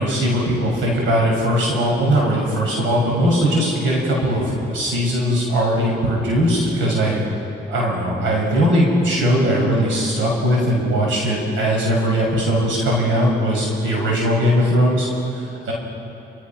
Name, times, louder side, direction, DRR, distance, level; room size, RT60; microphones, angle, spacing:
voice 1, 0.0-7.2 7.7-15.7, equal, 80° right, -2 dB, 6.9 m, -19 dB
29.0 x 28.5 x 6.1 m, 2.9 s
cardioid pair, 90°, 20 cm